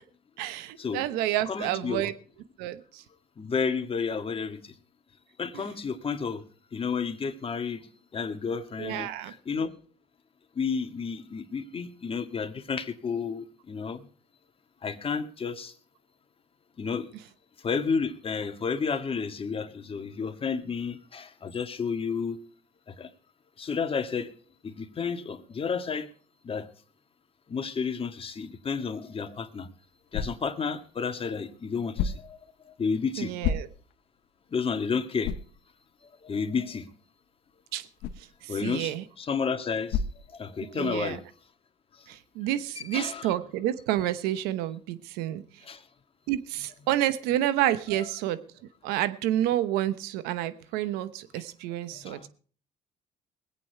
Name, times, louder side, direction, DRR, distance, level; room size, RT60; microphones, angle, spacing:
voice 1, 0.4-2.1 2.6-3.0 8.8-9.3 33.2-33.7 37.7-37.9 38.2-39.0 40.6-41.2 42.1-45.4 46.3-48.4 48.8-52.3, right 13 dB, 85° right, 14 dB, 0.9 m, -29 dB
voice 2, 1.5-2.1 3.4-4.7 5.4-6.4 6.7-7.9 8.1-9.7 10.6-14.1 14.8-15.7 16.8-17.1 17.6-22.4 22.9-23.1 23.6-24.3 24.6-26.1 26.4-26.7 27.5-29.7 30.1-32.4 32.6-33.4 34.5-35.3 36.2-36.9 38.5-40.0 40.3-41.2 42.0-42.1 42.9-43.3 45.6-45.8 51.9-52.3, left 5 dB, 35° left, 7 dB, 1.8 m, -31 dB
sound 1, 29.2-41.0, left 7 dB, 75° left, 1.2 m, -37 dB
21.0 x 8.6 x 4.6 m, 0.42 s
supercardioid pair, 85°, 16 cm